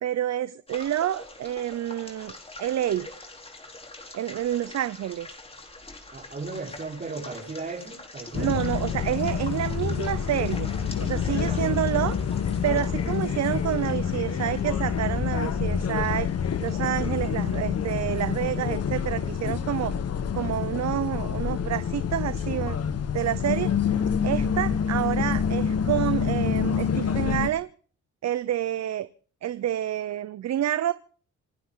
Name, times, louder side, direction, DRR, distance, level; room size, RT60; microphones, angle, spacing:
voice 1, 0.0-3.1 4.1-5.3 8.3-10.7 11.0-12.2 12.6-16.3 16.6-19.9 20.3-22.8 23.1-23.7 24.2-27.7 28.2-29.1 29.4-30.9, right 11 dB, 60° right, 0.9 m, -28 dB
sound 1, 0.7-19.5, left 2 dB, 20° left, 3.8 m, -46 dB
voice 2, 6.1-8.5 11.3-12.2, right 3 dB, 30° right, 4.6 m, -37 dB
sound 2, 8.3-27.5, left 7 dB, 55° left, 1.6 m, -27 dB
27.0 x 12.0 x 4.0 m
cardioid pair, 90°, 30 cm